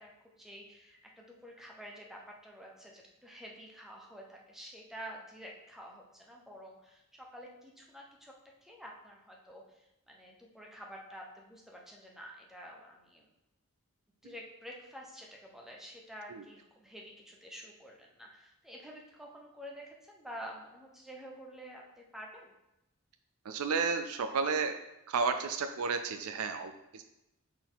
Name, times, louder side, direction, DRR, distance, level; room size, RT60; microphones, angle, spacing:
voice 1, 0.0-8.3 8.6-13.2 14.2-22.5, equal, ahead, -1 dB, 0.9 m, -49 dB
voice 2, 23.5-24.7 25.1-27.0, right 5 dB, 85° right, 7 dB, 0.5 m, -32 dB
6.2 x 4.1 x 4.0 m, 0.91 s
head